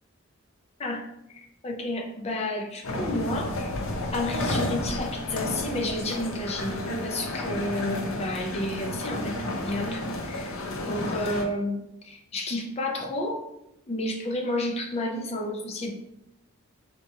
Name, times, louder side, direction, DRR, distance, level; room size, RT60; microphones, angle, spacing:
voice 1, 0.8-3.8 4.1-10.6 10.9-13.4 13.9-15.9, left 1 dB, 30° left, 2 dB, 0.5 m, -31 dB
sound 1, 2.8-11.4, left 1 dB, 75° left, 0.6 m, -31 dB
4.2 x 2.2 x 2.7 m, 0.85 s
head